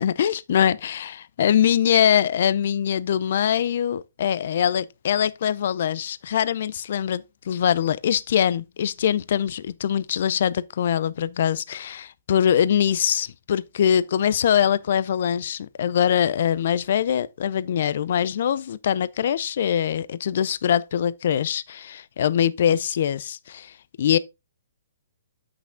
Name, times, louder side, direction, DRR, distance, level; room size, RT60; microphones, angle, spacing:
voice 1, 0.0-24.2, left 9 dB, 60° left, 0.5 m, -23 dB
8.2 x 6.1 x 3.7 m
hypercardioid pair, 145°, 0 cm